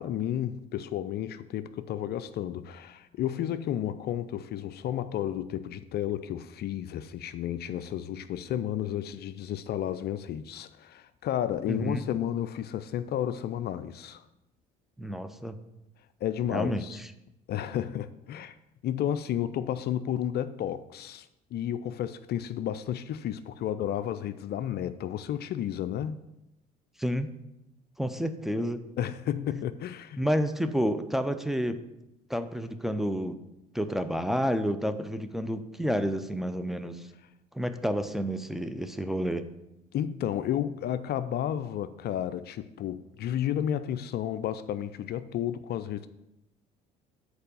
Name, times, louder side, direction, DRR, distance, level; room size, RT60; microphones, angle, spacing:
voice 1, 0.0-14.2 16.2-17.0 17.5-18.6 18.8-26.2 29.0-30.3 39.9-46.1, left 10 dB, 55° left, 0.4 m, -32 dB
voice 2, 11.7-12.0 15.0-15.6 16.5-17.1 27.0-27.3 28.0-28.8 30.2-31.8 32.3-33.4 33.7-37.1 37.5-39.4, equal, ahead, 0.6 m, -30 dB
6.6 x 4.7 x 6.8 m
hypercardioid pair, 60°, 20 cm